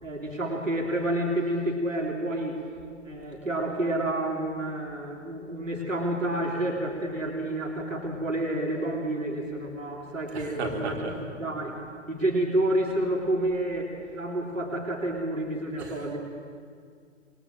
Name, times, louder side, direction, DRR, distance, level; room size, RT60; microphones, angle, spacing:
voice 1, 0.0-2.6 3.1-11.8 12.1-16.2, right 1 dB, 85° right, 1 dB, 3.7 m, -29 dB
voice 2, 10.3-11.2 15.8-16.1, right 3 dB, 55° right, 1 dB, 4.2 m, -34 dB
27.0 x 22.0 x 7.8 m, 2.1 s
figure-of-eight pair, 120°, 38 cm